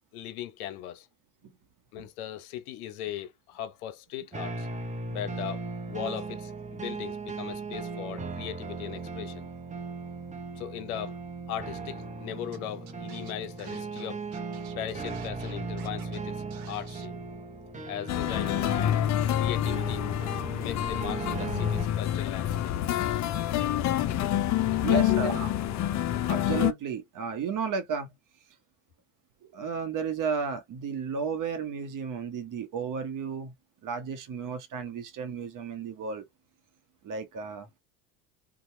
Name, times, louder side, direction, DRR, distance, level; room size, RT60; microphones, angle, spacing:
voice 1, 0.1-1.1 1.9-4.7 5.1-9.5 10.6-11.2 11.5-14.3 14.8-17.2 17.9-19.1 19.4-20.1 20.6-22.8 24.7-25.3 26.0-26.4, left 11 dB, 85° left, 0.6 m, -38 dB
sound 1, 4.3-21.9, right 4 dB, 15° right, 0.8 m, -37 dB
Scratching (performance technique), 12.5-12.6 12.9-16.2 16.5-17.1, right 7 dB, 80° right, 1.0 m, -51 dB
sound 2, 18.1-26.7, left 12 dB, 40° left, 0.5 m, -27 dB
voice 2, 24.8-25.5 26.3-28.1 29.4-33.5 33.8-36.2 37.0-37.7, right 6 dB, 45° right, 1.0 m, -33 dB
2.8 x 2.3 x 3.0 m
hypercardioid pair, 75°, 43 cm